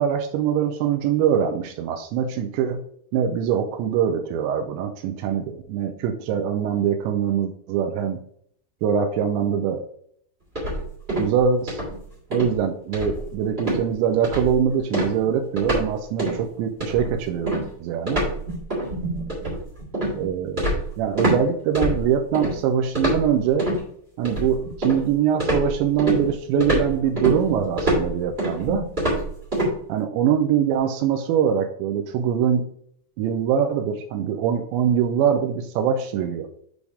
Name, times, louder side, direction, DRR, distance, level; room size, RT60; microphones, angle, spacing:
voice 1, 0.0-2.8 3.1-8.2 8.8-9.8 11.2-11.8 12.3-18.2 20.1-20.6 21.0-23.7 24.2-28.9 29.9-32.7 33.2-36.5, right 8 dB, 90° right, 5 dB, 2.6 m, -23 dB
sound 1, 10.5-11.4 11.7-12.0 12.3-12.5 12.9-13.3 13.6-13.8 14.2-14.6 14.9-15.9 16.2-16.4 16.8-21.4 21.7-22.5 22.9-23.8 24.2-25.1 25.4-29.7, right 1 dB, 30° right, 1.2 m, -25 dB
8.3 x 3.5 x 4.8 m, 0.67 s
omnidirectional pair, 5.8 m